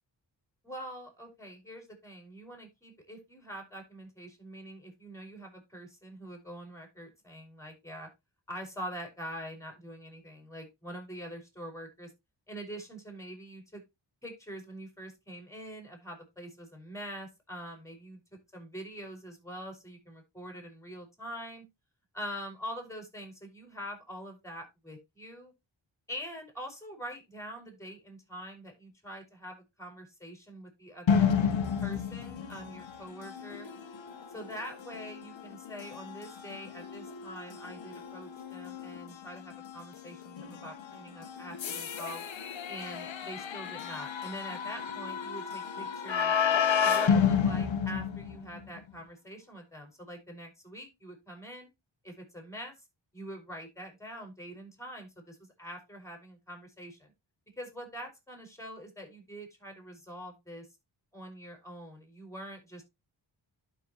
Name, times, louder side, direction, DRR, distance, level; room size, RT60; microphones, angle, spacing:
voice 1, 0.6-8.1 8.5-12.1 12.5-13.8 14.2-18.2 18.5-21.6 22.1-25.5 26.1-31.3 31.8-33.7 34.3-42.2 42.7-46.3 46.8-51.7 52.0-52.7 53.1-57.1 57.6-60.7 61.1-62.8, equal, 5° left, 4 dB, 5.6 m, -44 dB
sound 1, 31.1-48.8, left 7 dB, 75° left, 1.2 m, -32 dB
11.5 x 6.2 x 3.0 m, 0.23 s
cardioid pair, 65°, 46 cm